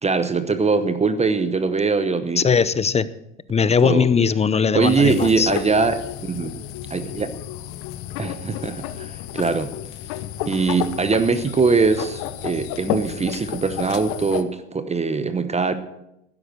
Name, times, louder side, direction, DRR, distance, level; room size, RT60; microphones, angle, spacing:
voice 1, 0.0-2.4 3.8-4.1 4.7-5.9 6.2-6.6 6.9-7.3 8.2-9.7 10.5-15.7, right 4 dB, 20° right, 11 dB, 0.9 m, -22 dB
voice 2, 2.4-3.1 3.5-5.5, left 6 dB, 20° left, 17 dB, 0.6 m, -19 dB
sound 1, 4.8-14.4, left 12 dB, 65° left, 1.0 m, -32 dB
12.5 x 10.0 x 6.5 m, 0.87 s
hypercardioid pair, 90°, 35 cm